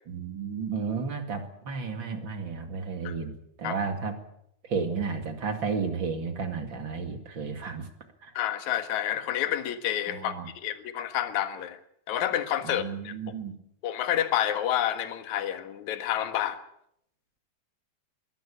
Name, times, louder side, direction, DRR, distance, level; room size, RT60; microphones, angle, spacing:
voice 1, 0.1-4.2 4.7-7.9 8.2-8.3 10.1-10.5 12.7-13.6, right 5 dB, 35° right, 7 dB, 2.4 m, -32 dB
voice 2, 8.3-11.8 12.1-13.3 13.8-16.6, left 11 dB, 60° left, 10 dB, 2.6 m, -29 dB
22.0 x 17.5 x 8.5 m, 0.73 s
omnidirectional pair, 4.4 m